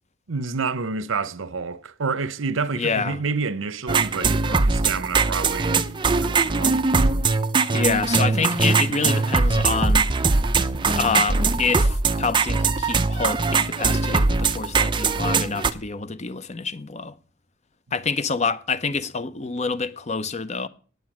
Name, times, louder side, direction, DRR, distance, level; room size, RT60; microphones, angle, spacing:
voice 1, 0.3-5.8 6.2-6.8, right 4 dB, 80° right, 0.8 m, -28 dB
voice 2, 2.7-3.2 7.7-10.1 10.9-17.2 17.9-20.7, left 4 dB, 35° left, 0.7 m, -27 dB
sound 1, 3.9-15.7, right 4 dB, 25° right, 0.6 m, -21 dB
9.6 x 9.2 x 6.0 m
head